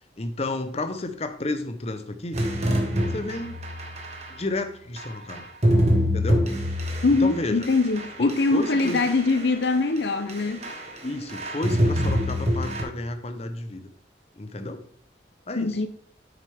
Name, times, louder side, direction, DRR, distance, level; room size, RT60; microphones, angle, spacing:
voice 1, 0.2-2.4 3.1-3.6 4.3-5.5 6.1-6.4 7.2-7.5 8.2-9.0 11.0-13.9 14.4-14.8 15.5-15.8, left 2 dB, 35° left, 0.8 m, -31 dB
sound 1, 2.3-4.4 5.0-10.0 10.3-11.0 11.3-12.8, equal, 35° right, 1.6 m, -26 dB
voice 2, 7.0-10.7 15.6-15.9, left 3 dB, 70° left, 0.6 m, -23 dB
8.8 x 6.6 x 3.5 m
head